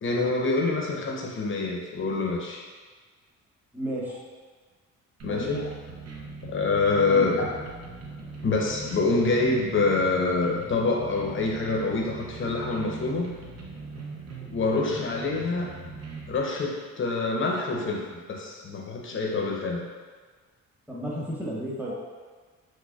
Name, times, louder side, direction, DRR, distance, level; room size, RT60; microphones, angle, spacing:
voice 1, 0.0-2.6 5.2-5.7 6.4-7.5 8.4-13.3 14.4-15.7 16.3-19.8 21.9-22.0, left 3 dB, 40° left, -1 dB, 0.8 m, -26 dB
voice 2, 3.7-4.2 5.3-5.5 7.1-7.3 14.7-14.9 20.9-22.0, right 1 dB, 5° right, -5 dB, 1.0 m, -33 dB
sound 1, 5.2-16.4, right 4 dB, 55° right, 0.7 m, -40 dB
6.2 x 2.2 x 2.4 m, 1.5 s
cardioid pair, 90°, 30 cm